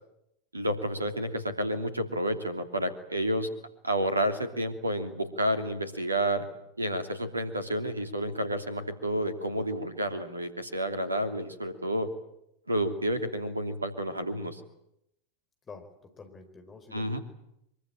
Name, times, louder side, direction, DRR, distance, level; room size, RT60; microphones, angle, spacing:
voice 1, 0.5-3.5 3.8-6.4 6.8-12.1 12.7-14.6 16.9-17.2, right 1 dB, 80° right, 8 dB, 2.9 m, -30 dB
voice 2, 15.7-17.2, left 4 dB, 20° left, 6 dB, 4.9 m, -48 dB
24.0 x 23.5 x 8.9 m, 0.82 s
figure-of-eight pair, 90°, 0 cm